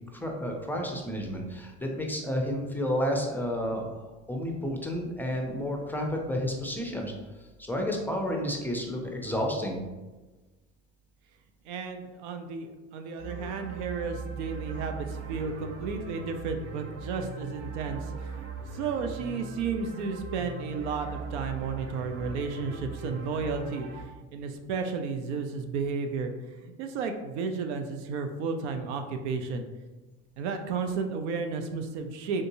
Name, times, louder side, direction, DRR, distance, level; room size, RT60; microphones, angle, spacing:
voice 1, 0.1-3.9 4.3-7.1 7.7-9.8, equal, 5° left, 1 dB, 0.5 m, -31 dB
voice 2, 11.7-18.3 18.7-24.0 24.3-26.3 26.6-29.7 30.4-32.5, right 5 dB, 85° right, 6 dB, 0.5 m, -33 dB
sound 1, 13.2-24.0, right 4 dB, 45° right, 0.7 m, -39 dB
3.6 x 2.6 x 2.7 m, 1.2 s
supercardioid pair, 85°, 33 cm